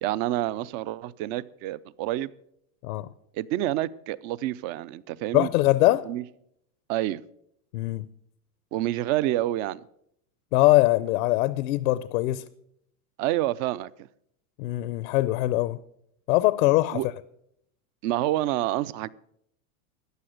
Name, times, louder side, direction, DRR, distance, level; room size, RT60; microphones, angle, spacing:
voice 1, 0.0-2.3 3.3-5.5 6.1-6.2 6.9-7.2 8.7-9.8 13.2-13.9 16.9-17.1 18.0-19.1, right 14 dB, 40° right, 0.5 m, -28 dB
voice 2, 5.3-6.1 7.7-8.0 10.5-12.4 14.6-15.8 16.3-17.0, left 18 dB, 75° left, 0.7 m, -22 dB
14.0 x 9.3 x 6.5 m
supercardioid pair, 130°, 43 cm